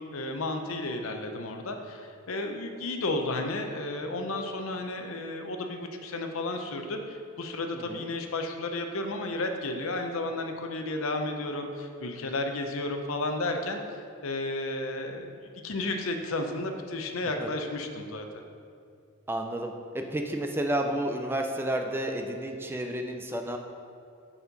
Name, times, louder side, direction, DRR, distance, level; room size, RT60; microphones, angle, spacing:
voice 1, 0.0-13.8 14.2-18.4, left 2 dB, 70° left, 5 dB, 0.6 m, -33 dB
voice 2, 7.7-8.1 17.4-17.5 19.3-23.6, right 1 dB, 10° right, 4 dB, 0.3 m, -31 dB
6.9 x 4.3 x 5.2 m, 2.4 s
head